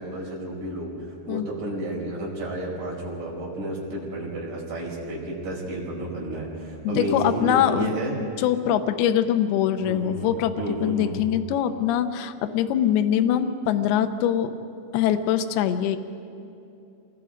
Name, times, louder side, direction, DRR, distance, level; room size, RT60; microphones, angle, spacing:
voice 1, 0.0-8.1 9.8-11.1, right 1 dB, 45° right, -4 dB, 6.4 m, -31 dB
voice 2, 6.8-8.0 8.4-10.5 10.8-14.5 14.9-16.0, left 10 dB, 80° left, 8 dB, 2.3 m, -23 dB
27.5 x 21.5 x 5.0 m, 2.7 s
omnidirectional pair, 5.7 m